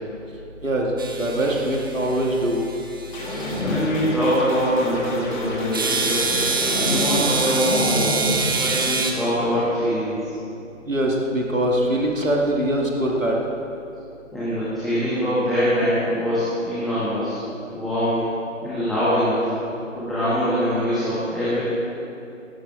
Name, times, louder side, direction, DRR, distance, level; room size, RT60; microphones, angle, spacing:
sound 1, 1.0-3.6 5.7-9.1, right 4 dB, 15° right, 0.6 m, -26 dB
voice 1, 1.2-2.6 10.9-13.4, right 1 dB, 75° right, -1 dB, 2.2 m, -22 dB
sound 2, 3.1-7.5, left 1 dB, 35° left, 2.7 m, -33 dB
sound 3, 3.1-4.1 4.7-7.3 7.6-8.7 8.9-9.0 9.3-9.7, left 1 dB, 20° left, 2.0 m, -27 dB
voice 2, 3.6-6.3 6.8-8.2 8.6-10.3 14.3-17.4 17.7-18.3 18.6-19.5 19.9-21.6, equal, ahead, -14 dB, 2.1 m, -23 dB
17.0 x 14.0 x 3.6 m, 2.8 s
figure-of-eight pair, 140°, 39 cm